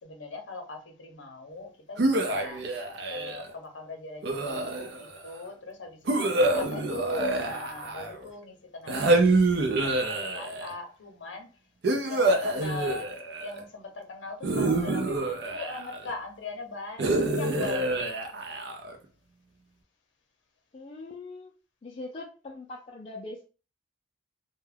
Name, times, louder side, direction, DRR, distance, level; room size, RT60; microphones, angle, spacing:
voice 1, 0.0-2.6 3.1-11.5 12.1-13.1 13.4-18.0, left 2 dB, 80° left, 0.6 m, -40 dB
sound 1, 2.0-3.5 4.2-5.2 6.1-8.3 8.9-10.7 11.8-13.6 14.4-16.1 17.0-19.0, right 2 dB, 60° right, 0.4 m, -26 dB
voice 2, 20.7-21.5 21.8-23.5, left 2 dB, 35° left, 0.4 m, -41 dB
2.2 x 2.1 x 3.2 m
head